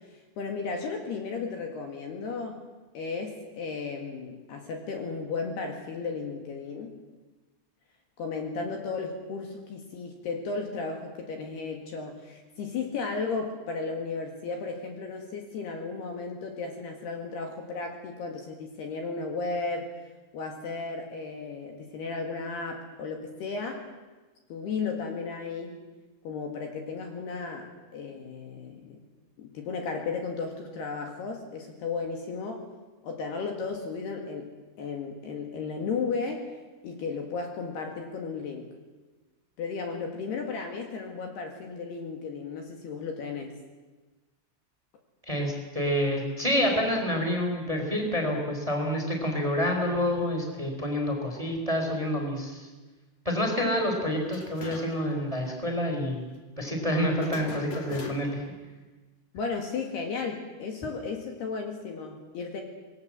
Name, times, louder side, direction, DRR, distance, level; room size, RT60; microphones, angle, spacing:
voice 1, 0.1-2.6 2.9-7.0 8.2-19.9 20.3-23.9 24.5-25.8 26.3-29.0 29.4-32.7 33.0-34.5 34.8-36.6 36.8-38.7 39.6-43.6 59.3-62.6, left 4 dB, 60° left, 3 dB, 3.7 m, -34 dB
voice 2, 45.3-52.7 53.2-56.3 56.6-58.4, equal, 10° right, 2 dB, 3.5 m, -28 dB
sound 1, 54.3-55.2 55.4-55.5 57.2-58.5, left 5 dB, 40° left, 2.7 m, -41 dB
26.5 x 21.0 x 7.7 m, 1.3 s
omnidirectional pair, 5.8 m